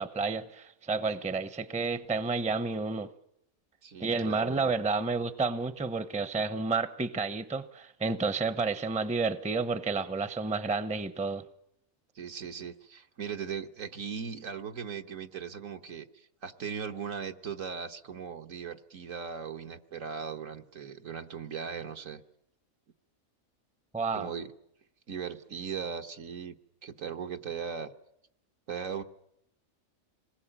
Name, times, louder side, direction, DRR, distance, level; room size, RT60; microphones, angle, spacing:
voice 1, 0.0-3.1 4.0-11.4 23.9-24.3, right 4 dB, 5° right, 13 dB, 0.7 m, -30 dB
voice 2, 3.8-4.7 12.1-22.2 24.1-24.5 25.1-26.5 26.8-27.9 28.7-29.0, right 6 dB, 70° right, 5 dB, 1.6 m, -38 dB
26.5 x 20.0 x 8.9 m, 0.78 s
omnidirectional pair, 1.4 m